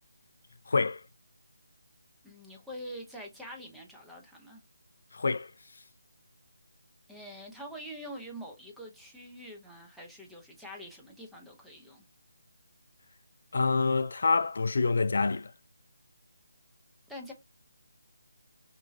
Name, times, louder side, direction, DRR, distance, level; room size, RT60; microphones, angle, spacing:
voice 1, 0.7-1.0 5.1-5.5 13.5-15.5, left 4 dB, 60° left, 0.3 m, -26 dB
voice 2, 2.2-4.6 7.1-12.0 17.1-17.3, equal, ahead, 0.6 m, -45 dB
3.1 x 2.2 x 2.4 m
figure-of-eight pair, 155°, 0 cm